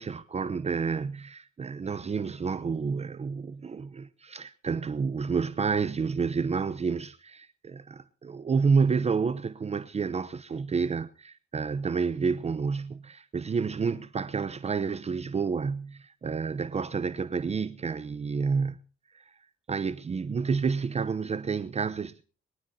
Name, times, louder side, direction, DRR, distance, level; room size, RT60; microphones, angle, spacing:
voice 1, 0.0-18.8 19.1-19.3 19.7-22.2, right 5 dB, 35° right, 0.8 m, -29 dB
23.0 x 17.5 x 2.8 m
cardioid pair, 90°, 20 cm